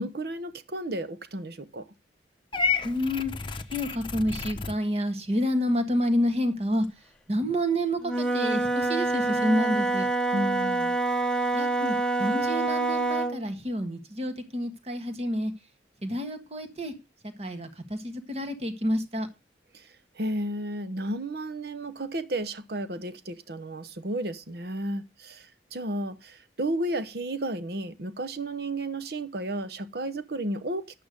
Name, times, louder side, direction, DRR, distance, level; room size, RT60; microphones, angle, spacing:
voice 1, 0.0-1.9 10.3-11.0 19.7-19.9 20.1-31.0, right 1 dB, 60° right, 0.9 m, -33 dB
Purr / Meow, 2.5-4.8, left 5 dB, 25° left, 0.9 m, -30 dB
voice 2, 2.8-3.3 3.7-6.9 7.3-10.1 11.5-15.5 16.0-16.9 17.4-19.3, equal, 35° right, 1.6 m, -28 dB
Wind instrument woodwind instrument, 8.0-13.4, right 2 dB, 5° left, 1.0 m, -26 dB
11.0 x 8.6 x 5.1 m
head